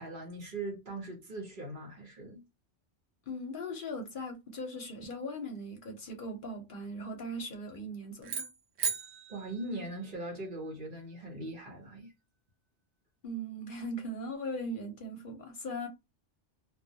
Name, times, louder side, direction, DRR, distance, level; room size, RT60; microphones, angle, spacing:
voice 1, 0.0-2.4 9.3-12.1, right 2 dB, 50° right, 0.9 m, -40 dB
voice 2, 3.3-8.5 13.2-15.9, equal, 55° left, 0.7 m, -39 dB
sound 1, 8.2-10.6, right 6 dB, 80° right, 0.9 m, -38 dB
2.2 x 2.2 x 2.7 m
omnidirectional pair, 1.1 m